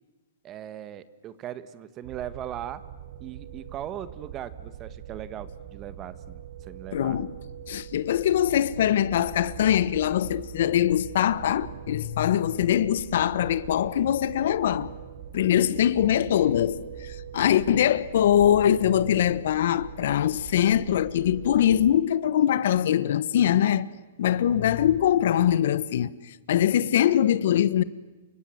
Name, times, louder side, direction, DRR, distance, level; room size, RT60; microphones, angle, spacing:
voice 1, 0.4-2.8 3.2-7.2, right 10 dB, 25° right, 1.6 m, -39 dB
sound 1, 2.0-22.0, right 9 dB, 50° right, 2.4 m, -42 dB
voice 2, 6.9-7.3 7.7-14.9 15.3-23.9 24.2-26.1 26.5-27.8, left 10 dB, 65° left, 1.3 m, -22 dB
29.5 x 25.0 x 8.0 m
hypercardioid pair, 155°, 0 cm